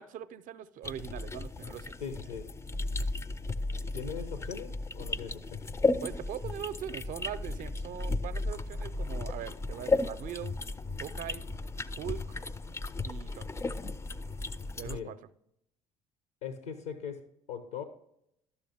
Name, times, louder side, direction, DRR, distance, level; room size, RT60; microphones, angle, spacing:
voice 1, 0.0-2.0 6.0-10.6 11.0-11.4 12.0-12.4 13.0-13.5 14.7-15.2, right 10 dB, 50° right, 14 dB, 0.5 m, -41 dB
sound 1, 0.8-15.0, left 3 dB, 15° left, 0.4 m, -34 dB
voice 2, 2.0-2.4 3.9-5.7 14.8-15.1 16.4-17.8, left 7 dB, 80° left, 9 dB, 0.7 m, -40 dB
11.5 x 6.9 x 2.8 m, 0.77 s
figure-of-eight pair, 55°, 18 cm